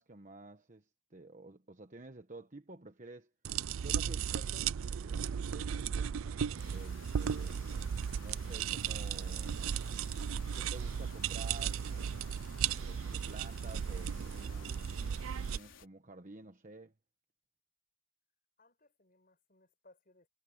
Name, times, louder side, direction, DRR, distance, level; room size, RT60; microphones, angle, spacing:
voice 1, 0.0-3.3 3.8-6.1 6.7-7.6 8.2-9.5 10.5-11.8 12.8-16.9, right 2 dB, 40° right, 1.1 m, -51 dB
sound 1, 3.4-15.6, right 7 dB, 85° right, 0.4 m, -36 dB
sound 2, 6.6-15.9, left 6 dB, 70° left, 4.4 m, -56 dB
voice 2, 18.6-20.3, left 2 dB, 45° left, 6.4 m, -65 dB
head